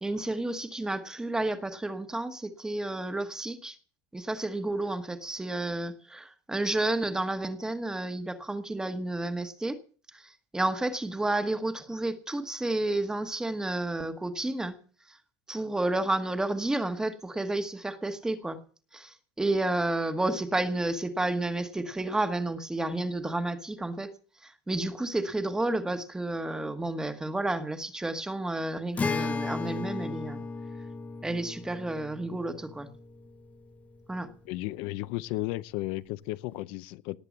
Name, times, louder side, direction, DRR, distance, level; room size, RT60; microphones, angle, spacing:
voice 1, 0.0-3.8 4.1-9.8 10.1-14.8 15.1-15.2 15.5-18.6 18.9-24.1 24.4-30.4 31.2-32.9 34.1-34.3, right 2 dB, 5° right, 1.2 m, -31 dB
Acoustic guitar, 29.0-34.4, left 4 dB, 15° left, 0.9 m, -36 dB
voice 2, 34.5-37.2, left 18 dB, 65° left, 0.7 m, -34 dB
18.5 x 8.5 x 7.3 m
cardioid pair, 170°, 10 cm